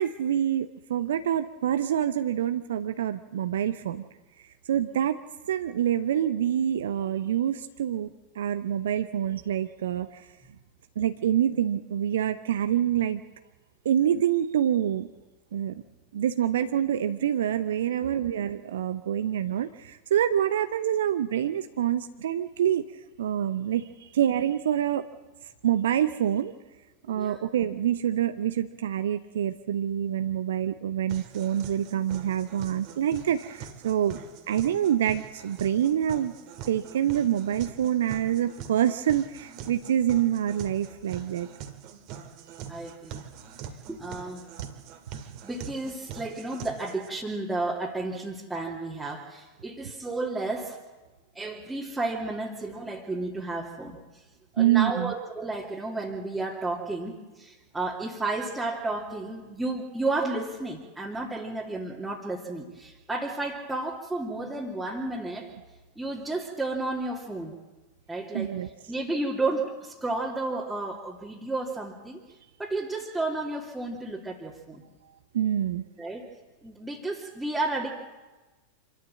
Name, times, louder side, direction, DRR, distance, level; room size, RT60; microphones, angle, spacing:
voice 1, 0.0-4.0 4.7-5.2 5.5-10.3 11.0-13.2 13.8-15.1 15.5-15.7 16.1-22.8 23.2-25.0 25.6-26.5 27.1-34.2 34.5-36.3 36.7-41.5 54.6-55.1 68.3-68.7 75.3-75.8, right 10 dB, 60° right, 10 dB, 0.8 m, -26 dB
voice 2, 27.1-27.4 34.1-34.2 42.7-43.2 43.9-44.5 45.4-50.8 51.3-54.0 54.5-65.5 66.0-67.5 68.1-68.6 68.9-72.2 72.6-74.8 76.0-76.3 76.6-77.9, right 2 dB, 5° right, -5 dB, 2.7 m, -32 dB
sound 1, 31.1-47.1, right 8 dB, 40° right, 2.1 m, -44 dB
26.5 x 13.0 x 7.7 m, 1.2 s
figure-of-eight pair, 90°, 0 cm